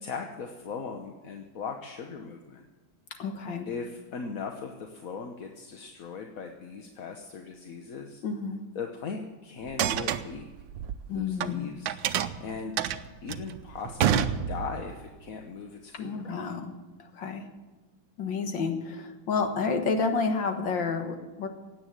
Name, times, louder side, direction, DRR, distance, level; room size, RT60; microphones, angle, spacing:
voice 1, 0.0-2.6 3.7-8.2 8.7-10.4 11.1-11.9 12.4-12.7 13.2-16.3, left 5 dB, 50° left, 4 dB, 1.3 m, -39 dB
voice 2, 3.2-3.7 8.2-8.6 11.1-11.7 15.9-16.7 17.0-17.5 18.2-21.5, left 4 dB, 70° left, 6 dB, 2.1 m, -30 dB
sound 1, 9.6-11.5 11.9-14.9, right 9 dB, 75° right, 1.4 m, -28 dB
16.5 x 9.3 x 9.0 m, 1.2 s
omnidirectional pair, 2.1 m